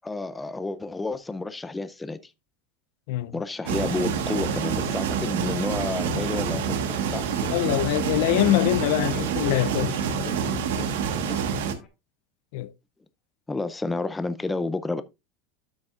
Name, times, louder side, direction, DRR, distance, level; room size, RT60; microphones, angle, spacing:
voice 1, 0.0-2.3 3.3-7.3 13.5-15.0, left 3 dB, 10° left, 0.5 m, -30 dB
sound 1, 3.7-11.7, right 6 dB, 85° right, 1.3 m, -27 dB
Guitar / Drum, 6.3-11.9, left 6 dB, 30° left, 1.7 m, -43 dB
voice 2, 7.5-10.0 12.5-12.7, left 16 dB, 65° left, 0.4 m, -24 dB
12.0 x 6.2 x 2.4 m
supercardioid pair, 160°, 0 cm